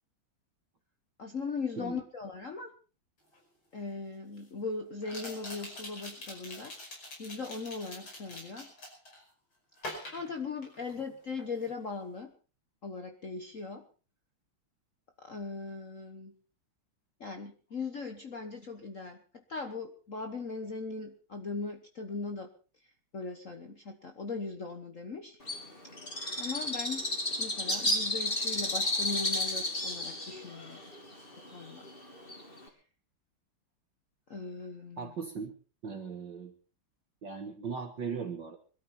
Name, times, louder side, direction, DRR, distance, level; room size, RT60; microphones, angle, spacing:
voice 1, 1.2-2.7 3.7-6.7 7.2-8.7 10.1-12.3 12.8-13.8 15.2-16.3 17.2-19.2 19.5-22.5 23.1-25.4 26.4-27.1 27.4-30.8 31.5-31.9 34.3-35.1, left 4 dB, 40° left, 5 dB, 1.4 m, -39 dB
sound 1, 3.3-3.4 5.0-9.2 9.8-11.1 11.4-11.7, left 1 dB, 70° left, 6.2 m, -44 dB
Bird, 25.5-32.7, left 1 dB, 25° left, 3.1 m, -33 dB
voice 2, 35.0-35.5 35.8-36.5 37.2-38.6, right 5 dB, 55° right, 3 dB, 2.2 m, -38 dB
22.0 x 13.0 x 4.2 m, 0.36 s
omnidirectional pair, 2.4 m